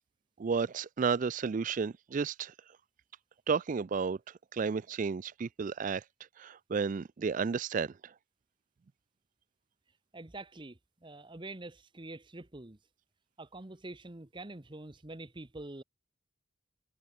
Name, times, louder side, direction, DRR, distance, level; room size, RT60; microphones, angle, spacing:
voice 1, 0.4-2.5 3.5-4.2 4.5-6.0 6.4-7.9, right 5 dB, 35° right, 0.3 m, -32 dB
voice 2, 10.1-12.8 13.4-15.8, right 2 dB, 20° right, 0.9 m, -46 dB
head